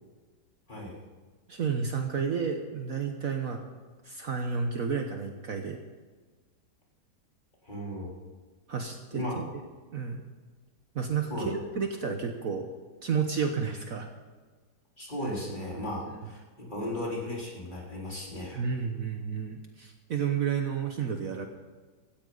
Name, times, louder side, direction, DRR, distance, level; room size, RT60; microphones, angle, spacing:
voice 1, 1.5-3.6 4.0-5.8 8.7-9.5 9.9-10.2 10.9-12.7 13.0-14.1 16.1-16.3 18.5-21.5, right 6 dB, 55° right, 4 dB, 1.4 m, -31 dB
voice 2, 7.6-8.2 9.1-9.4 11.3-11.6 15.0-18.6, left 1 dB, 25° left, -4 dB, 3.9 m, -35 dB
16.0 x 14.5 x 4.0 m, 1.4 s
omnidirectional pair, 1.9 m